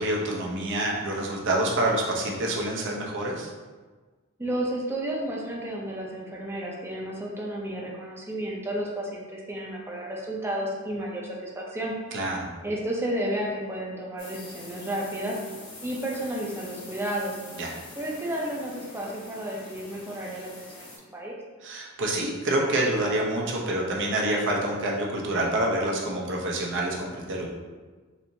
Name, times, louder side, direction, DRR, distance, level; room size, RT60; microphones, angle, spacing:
voice 1, 0.0-3.5 12.1-12.5 17.5-17.7 21.6-27.5, right 1 dB, 60° right, -2 dB, 0.7 m, -27 dB
voice 2, 4.4-11.9 12.6-15.4 15.8-17.4 18.0-21.4, right 1 dB, 10° right, -3 dB, 0.6 m, -32 dB
sound 1, 14.2-21.0, left 2 dB, 70° left, 1.4 m, -45 dB
4.3 x 2.6 x 2.6 m, 1.4 s
head